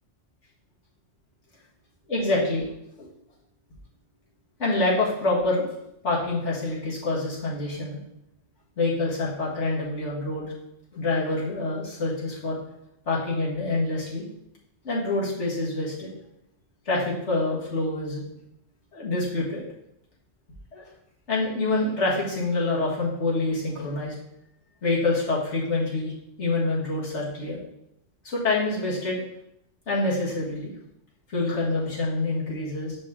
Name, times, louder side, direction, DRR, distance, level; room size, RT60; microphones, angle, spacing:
voice 1, 2.1-3.1 4.6-5.7 6.0-8.0 8.8-10.5 10.9-12.6 13.1-14.3 14.8-16.1 16.9-18.2 18.9-19.6 20.7-20.8 21.3-24.1 24.8-26.1 26.4-27.6 28.2-29.2 29.9-30.7 31.3-33.0, left 2 dB, 65° left, -6 dB, 2.1 m, -26 dB
6.3 x 5.3 x 3.7 m, 0.81 s
omnidirectional pair, 1.3 m